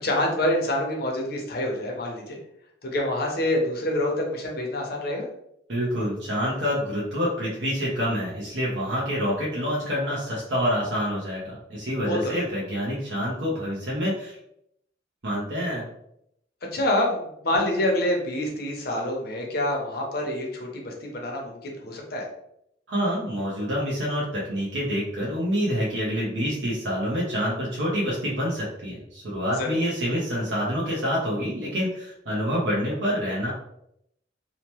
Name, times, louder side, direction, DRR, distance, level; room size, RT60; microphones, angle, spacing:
voice 1, 0.0-2.4 2.8-5.3 12.0-12.5 16.7-22.3 29.6-29.8, left 1 dB, 55° left, 0 dB, 0.7 m, -27 dB
voice 2, 5.7-14.4 15.2-15.8 22.9-33.5, equal, 80° right, -5 dB, 0.8 m, -27 dB
2.8 x 2.1 x 2.9 m, 0.76 s
head